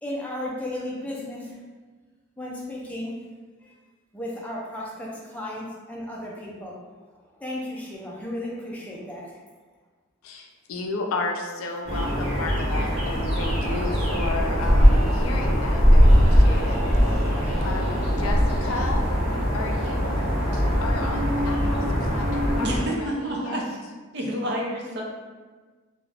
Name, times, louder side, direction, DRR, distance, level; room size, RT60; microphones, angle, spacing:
voice 1, 0.0-1.6 2.4-3.1 3.6-3.7 4.1-6.7 7.4-9.4, left 1 dB, 5° left, -5 dB, 0.4 m, -34 dB
voice 2, 10.2-16.8 17.1-17.3 17.6-19.1 19.5-20.3 20.8-23.6, left 2 dB, 85° left, 2 dB, 0.4 m, -33 dB
sound 1, 11.8-22.8, equal, 30° right, 0.9 m, -21 dB
voice 3, 22.6-23.8 24.1-25.0, equal, 55° right, -2 dB, 0.5 m, -29 dB
2.3 x 2.1 x 3.3 m, 1.3 s
head